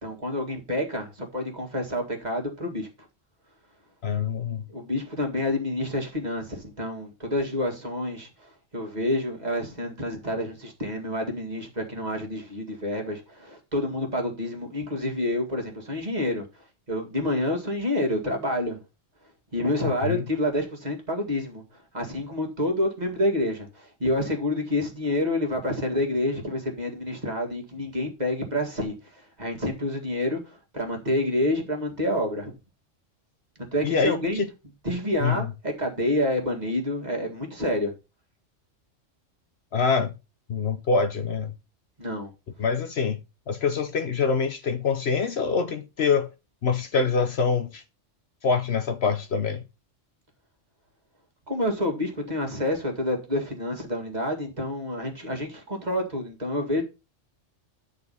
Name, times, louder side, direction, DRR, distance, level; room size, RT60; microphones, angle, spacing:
voice 1, 0.0-2.9 4.7-16.4 16.9-18.8 19.5-21.6 21.9-32.5 33.6-34.4 34.8-37.9 42.0-42.3 51.5-56.8, left 1 dB, 35° right, 2.0 m, -28 dB
voice 2, 4.0-4.7 19.8-20.3 33.8-34.5 35.2-35.5 39.7-40.1 40.5-41.5 42.6-43.2 43.5-46.3 46.6-47.8 48.4-49.6, left 5 dB, 60° left, 0.9 m, -25 dB
9.4 x 4.2 x 5.4 m
omnidirectional pair, 1.3 m